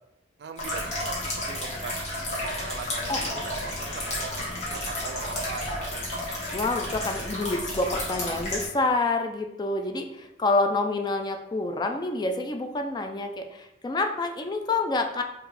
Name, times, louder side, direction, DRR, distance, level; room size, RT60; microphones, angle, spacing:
voice 1, 0.4-2.1 2.5-6.0, right 5 dB, 65° right, 8 dB, 0.3 m, -40 dB
sound 1, 0.6-8.6, left 1 dB, 40° left, 1.2 m, -32 dB
sound 2, 2.5-8.1, left 1 dB, 75° left, 0.7 m, -48 dB
voice 2, 6.5-15.2, left 2 dB, 25° left, 5 dB, 0.3 m, -27 dB
4.5 x 2.5 x 3.2 m, 0.88 s
head